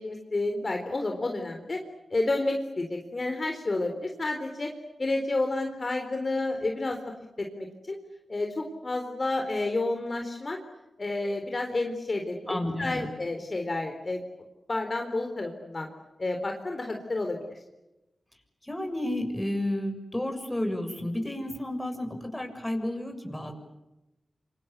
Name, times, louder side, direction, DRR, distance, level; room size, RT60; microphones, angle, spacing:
voice 1, 0.0-1.8 2.1-4.7 5.0-7.0 7.4-8.0 8.3-10.6 11.0-14.2 14.7-15.9 16.2-17.6, left 2 dB, 45° left, 4 dB, 4.1 m, -30 dB
voice 2, 12.5-13.1 18.6-23.5, left 1 dB, 15° left, 5 dB, 6.9 m, -31 dB
28.5 x 25.0 x 8.3 m, 0.98 s
cardioid pair, 50°, 0 cm